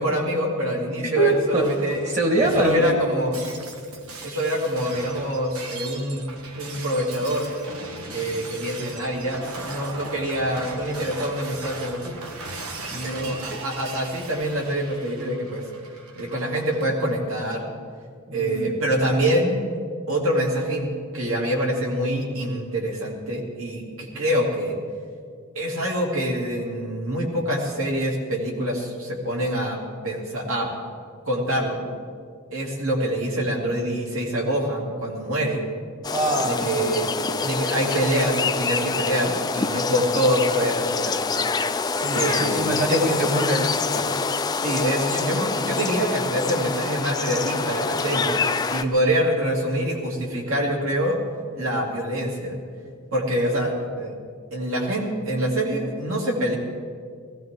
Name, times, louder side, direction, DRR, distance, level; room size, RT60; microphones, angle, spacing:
voice 1, 0.0-2.1 2.4-3.5 4.2-6.2 6.5-7.5 8.1-12.1 13.0-15.6 16.1-17.6 18.3-19.6 20.1-24.8 25.5-29.8 30.0-30.7 31.2-31.8 32.5-35.6 36.5-37.1 37.4-41.2 42.1-43.2 44.6-48.4 48.7-51.2 51.5-52.6 53.1-54.1 54.5-56.6, equal, 70° right, -2 dB, 3.2 m, -25 dB
voice 2, 1.0-1.8 2.1-2.9 12.9-13.6 18.3-18.8 36.1-37.1 41.8-44.1, right 1 dB, 35° right, 2 dB, 1.8 m, -25 dB
Shatter, 1.3-16.9, right 3 dB, 90° right, 1.5 m, -38 dB
sound 1, 36.0-48.8, left 4 dB, 20° left, 0.4 m, -26 dB
19.5 x 16.0 x 3.9 m, 2.1 s
head